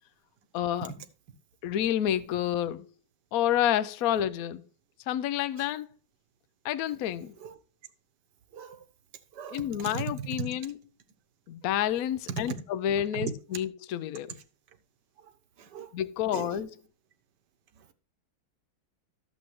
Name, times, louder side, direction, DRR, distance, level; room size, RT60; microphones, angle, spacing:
voice 1, 0.5-0.9 1.6-2.9 3.3-4.6 5.1-5.9 6.6-7.3 9.5-10.7 11.5-14.4 15.9-16.7, left 11 dB, 75° left, 0.8 m, -29 dB
voice 2, 8.5-8.8 9.3-10.5 12.3-12.6 13.1-13.3 15.2-15.3 15.6-15.9 16.3-16.6 17.7-17.9, right 6 dB, 65° right, 1.4 m, -37 dB
12.0 x 7.2 x 3.2 m
omnidirectional pair, 2.2 m